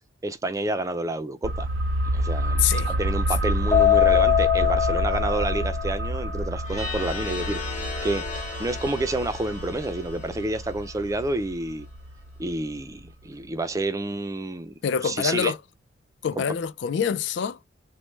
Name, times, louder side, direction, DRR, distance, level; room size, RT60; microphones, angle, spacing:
voice 1, 0.2-1.7 2.1-7.8 8.0-11.9 12.4-14.7 15.0-15.5, right 2 dB, 20° right, 0.4 m, -29 dB
sound 1, 1.4-12.8 13.1-13.2, right 1 dB, 90° right, 0.5 m, -28 dB
voice 2, 2.6-2.9 14.8-15.6 16.2-17.6, left 7 dB, 70° left, 0.4 m, -25 dB
Keyboard (musical), 3.7-6.2, left 12 dB, 15° left, 0.7 m, -22 dB
sound 2, 6.6-11.5, left 4 dB, 45° left, 1.3 m, -36 dB
3.2 x 2.1 x 3.1 m
head